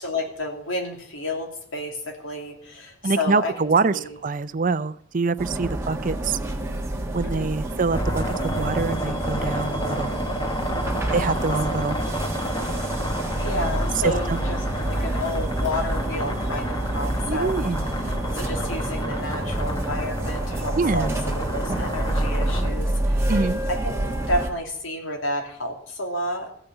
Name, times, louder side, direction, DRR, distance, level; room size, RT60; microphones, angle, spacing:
voice 1, 0.0-4.2 7.2-7.5 13.4-14.6 14.8-17.5 18.3-23.3 23.7-26.5, left 1 dB, 80° left, 2 dB, 2.8 m, -31 dB
voice 2, 3.0-6.4 7.1-10.1 11.1-12.0 14.0-14.4 17.3-17.9 20.8-21.1 23.3-23.6, right 4 dB, 40° right, 14 dB, 0.5 m, -25 dB
sound 1, 5.4-24.5, right 1 dB, 15° right, 1.4 m, -28 dB
sound 2, 7.9-22.7, equal, 20° left, 1.4 m, -31 dB
15.0 x 5.8 x 9.0 m, 0.67 s
head